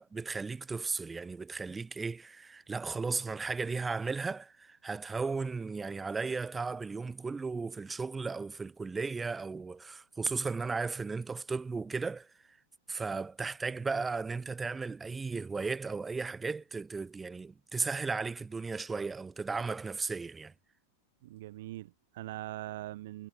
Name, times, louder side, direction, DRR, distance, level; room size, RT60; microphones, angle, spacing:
voice 1, 0.0-12.3 12.9-20.5, right 4 dB, 15° right, 0.6 m, -35 dB
voice 2, 21.2-23.3, right 16 dB, 55° right, 0.4 m, -42 dB
figure-of-eight pair, 90°, 0 cm